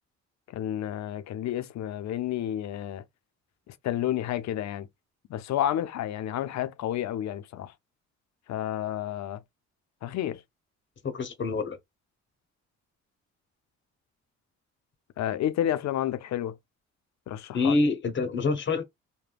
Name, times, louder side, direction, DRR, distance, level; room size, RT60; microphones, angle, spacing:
voice 1, 0.5-3.0 3.7-4.9 5.3-7.7 8.5-9.4 10.0-10.4 15.2-16.5 17.3-17.8, left 11 dB, 65° left, 0.5 m, -30 dB
voice 2, 11.0-11.8 17.5-18.8, left 3 dB, 40° left, 0.9 m, -26 dB
3.3 x 2.2 x 2.2 m
cardioid pair, 90°, 30 cm